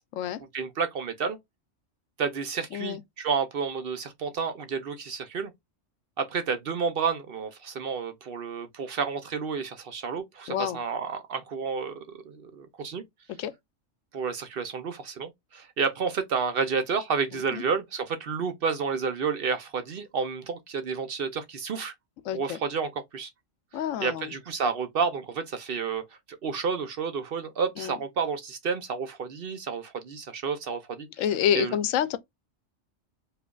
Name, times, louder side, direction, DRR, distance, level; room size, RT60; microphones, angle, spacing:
voice 1, 0.5-1.4 2.2-5.5 6.2-13.0 14.1-21.9 22.3-23.3 24.0-26.0 26.3-31.1 31.5-31.8, right 5 dB, 55° right, 0.7 m, -30 dB
voice 2, 10.5-10.8 13.4-13.5 17.5-17.6 22.3-22.6 23.7-24.3 27.8-28.0 31.2-32.2, left 10 dB, 85° left, 1.0 m, -28 dB
4.9 x 2.5 x 2.3 m
omnidirectional pair, 1.3 m